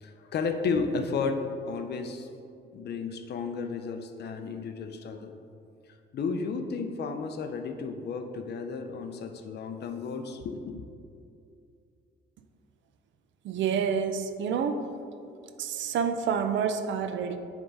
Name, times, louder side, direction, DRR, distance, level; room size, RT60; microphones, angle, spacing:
voice 1, 0.0-2.3 2.7-5.3 6.1-10.8, left 4 dB, 55° left, 6 dB, 0.6 m, -33 dB
voice 2, 13.4-14.8 15.6-17.4, right 7 dB, 70° right, 8 dB, 0.5 m, -28 dB
6.9 x 3.5 x 4.0 m, 2.5 s
cardioid pair, 90°, 20 cm